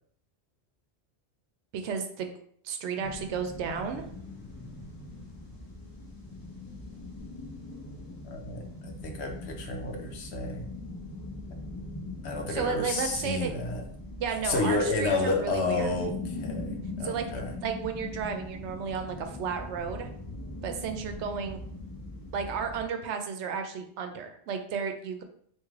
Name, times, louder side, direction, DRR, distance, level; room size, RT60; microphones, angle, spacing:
voice 1, 1.7-2.3 2.6-4.0 12.5-13.5 14.2-16.0 17.0-17.2 17.6-20.1 20.6-21.6 22.3-25.2, right 6 dB, 90° right, 6 dB, 0.9 m, -33 dB
sound 1, 3.0-22.8, left 2 dB, 25° left, 0.7 m, -41 dB
voice 2, 8.2-10.7 12.2-13.8 14.4-17.5, left 3 dB, 75° left, 3 dB, 1.0 m, -31 dB
3.2 x 2.8 x 3.6 m, 0.63 s
omnidirectional pair, 1.1 m